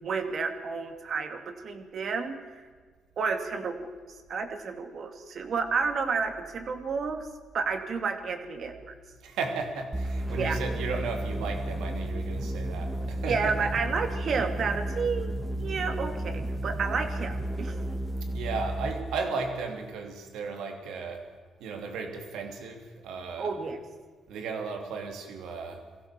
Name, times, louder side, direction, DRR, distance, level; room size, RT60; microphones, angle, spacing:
voice 1, 0.0-2.6 3.2-3.9 4.3-7.3 7.5-8.9 10.4-10.6 13.3-17.8 23.4-23.8, right 5 dB, 55° right, 6 dB, 2.6 m, -31 dB
voice 2, 9.2-13.7 18.3-21.3 21.6-23.6 24.3-25.8, right 4 dB, 85° right, 4 dB, 3.2 m, -35 dB
sound 1, 9.9-19.0, right 1 dB, 20° right, 2.6 m, -33 dB
22.0 x 16.0 x 7.6 m, 1.5 s
cardioid pair, 90°, 0 cm